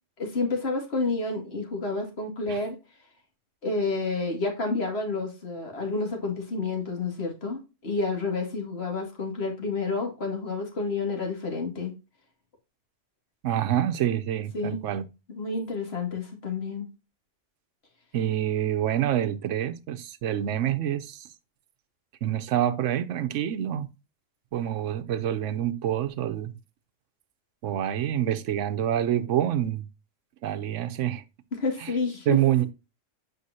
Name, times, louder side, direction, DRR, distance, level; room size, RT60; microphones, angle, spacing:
voice 1, 0.2-2.8 3.6-11.9 14.5-14.8 15.3-16.9 31.5-32.4, left 3 dB, 55° left, 2.3 m, -29 dB
voice 2, 13.4-15.1 18.1-21.3 22.2-23.9 24.5-26.5 27.6-29.9 30.4-31.2 31.8-31.9 32.3-32.7, right 11 dB, 80° right, 1.0 m, -27 dB
8.0 x 5.4 x 2.7 m
omnidirectional pair, 1.3 m